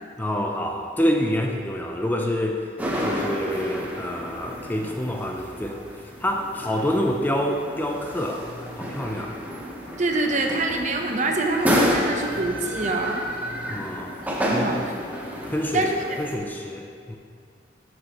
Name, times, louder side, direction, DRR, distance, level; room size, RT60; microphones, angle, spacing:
voice 1, 0.2-2.6 3.0-5.8 6.2-9.4 13.7-14.1 14.5-14.8 15.5-15.9 16.2-17.2, equal, 10° left, 2 dB, 0.5 m, -27 dB
sound 1, 2.8-16.3, equal, 10° right, 0.9 m, -30 dB
voice 2, 10.0-13.2 14.4-14.9 15.7-16.2, right 2 dB, 45° right, 2 dB, 0.8 m, -25 dB
12.0 x 6.4 x 3.0 m, 2.2 s
head